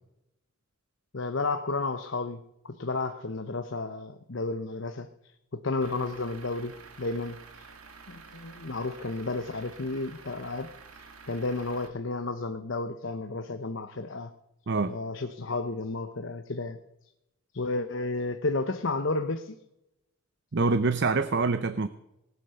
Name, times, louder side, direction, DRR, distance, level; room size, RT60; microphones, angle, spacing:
voice 1, 1.1-5.1 5.5-7.7 8.1-10.7 11.3-14.3 14.9-16.8 17.5-19.6, left 3 dB, 60° left, 8 dB, 0.9 m, -32 dB
Truck / Idling, 5.8-11.9, right 4 dB, 80° right, 1.9 m, -50 dB
voice 2, 20.5-21.9, right 3 dB, 50° right, 13 dB, 0.6 m, -25 dB
19.0 x 9.3 x 6.9 m, 0.88 s
head